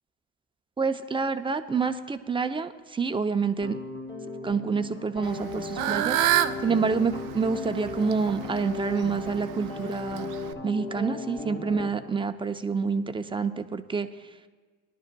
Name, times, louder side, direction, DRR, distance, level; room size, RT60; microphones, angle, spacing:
voice 1, 0.8-3.8 4.4-10.3 10.6-14.1, right 5 dB, 15° right, 9 dB, 0.6 m, -28 dB
sound 1, 3.6-11.9, left 3 dB, 35° left, 2.2 m, -37 dB
Fowl / Bird, 5.2-10.5, right 12 dB, 65° right, 0.7 m, -29 dB
19.0 x 11.5 x 2.3 m, 1.5 s
supercardioid pair, 85°, 34 cm